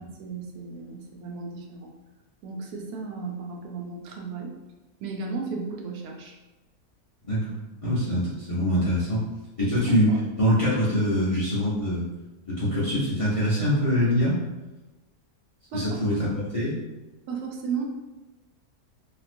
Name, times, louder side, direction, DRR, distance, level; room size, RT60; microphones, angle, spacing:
voice 1, 0.0-1.9 2.4-4.5 5.0-6.4 10.1-10.2 15.7-16.0 17.3-17.9, right 4 dB, 80° right, 1 dB, 1.1 m, -34 dB
voice 2, 7.2-9.2 9.6-12.1 12.5-14.4 15.7-16.8, equal, 35° left, -10 dB, 0.6 m, -24 dB
3.0 x 2.8 x 2.5 m, 1.1 s
omnidirectional pair, 1.6 m